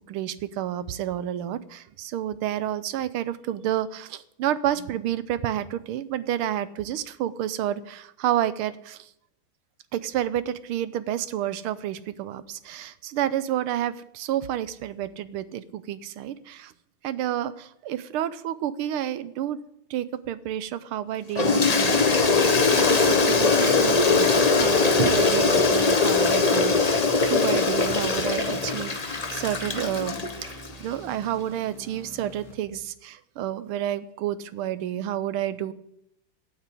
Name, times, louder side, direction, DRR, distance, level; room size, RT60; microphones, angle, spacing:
voice 1, 0.1-9.1 9.9-16.7 17.0-19.6 19.9-22.4 22.7-30.1 30.4-35.7, right 11 dB, 85° right, 15 dB, 1.6 m, -30 dB
Toilet flush, 21.4-30.7, left 4 dB, 35° left, 0.6 m, -21 dB
sound 1, 21.5-32.5, right 1 dB, ahead, 3.7 m, -45 dB
13.5 x 9.0 x 8.4 m, 0.78 s
omnidirectional pair, 2.3 m